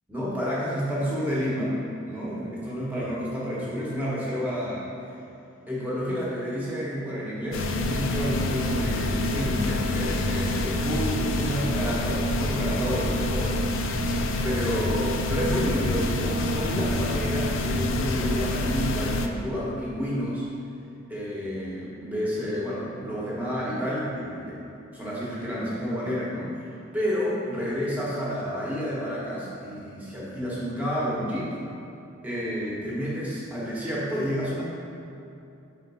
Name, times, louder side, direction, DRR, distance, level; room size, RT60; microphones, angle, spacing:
voice 1, 0.1-1.8 2.1-4.9 5.7-13.7 14.4-20.4 21.1-26.5 26.9-31.5 32.2-34.6, equal, 10° right, -7 dB, 1.2 m, -30 dB
sound 1, 7.5-19.3, left 1 dB, 65° left, 0.4 m, -27 dB
5.2 x 3.8 x 5.4 m, 2.7 s
head